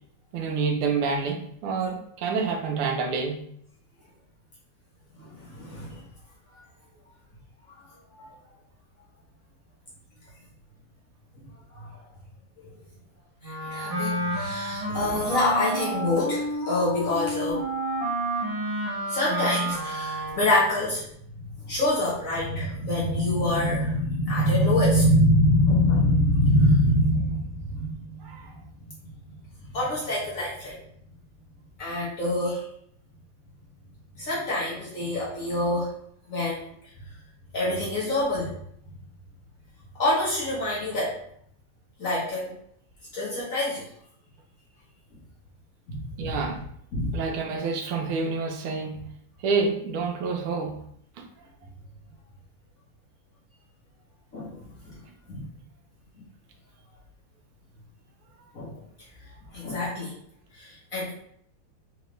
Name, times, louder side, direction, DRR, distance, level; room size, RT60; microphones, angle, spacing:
voice 1, 0.3-3.5 28.2-28.5 46.2-46.6 47.1-49.1 49.4-50.8 51.2-51.3 59.7-59.8, right 4 dB, 80° right, 3 dB, 1.5 m, -28 dB
voice 2, 5.1-6.0 11.7-12.0 12.6-12.7 13.4-17.6 19.1-21.1 21.6-28.2 28.8-28.9 29.7-30.8 31.8-32.7 34.2-35.9 36.3-36.7 37.5-38.5 40.0-41.1 42.0-42.5 43.1-43.9 46.0-46.4 46.9-47.2 54.3-54.5 54.8-55.0 55.3-55.4 58.5-58.7 59.5-60.1 60.5-61.1, left 1 dB, 45° left, -7 dB, 1.2 m, -25 dB
Wind instrument woodwind instrument, 13.4-20.7, right 1 dB, 15° right, 1.1 m, -30 dB
3.9 x 3.2 x 3.1 m, 0.68 s
omnidirectional pair, 2.4 m